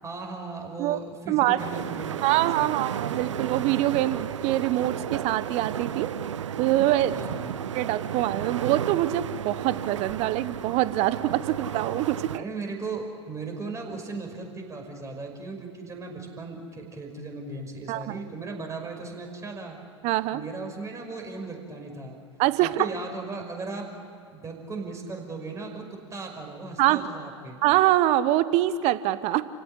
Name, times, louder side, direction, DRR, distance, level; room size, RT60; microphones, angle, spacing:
voice 1, 0.0-2.7 7.1-7.6 12.4-19.8 20.3-22.2 22.6-23.9 24.3-27.6, right 3 dB, 20° right, 3 dB, 5.6 m, -37 dB
voice 2, 1.3-1.6 2.2-6.1 6.6-7.2 7.7-12.4 17.9-18.2 20.0-20.4 22.4-22.9 26.8-27.0 27.6-29.4, right 14 dB, 45° right, 15 dB, 1.0 m, -24 dB
sound 1, 1.6-12.4, right 9 dB, 75° right, 0.7 m, -33 dB
29.5 x 17.0 x 9.9 m, 2.5 s
figure-of-eight pair, 90°, 16 cm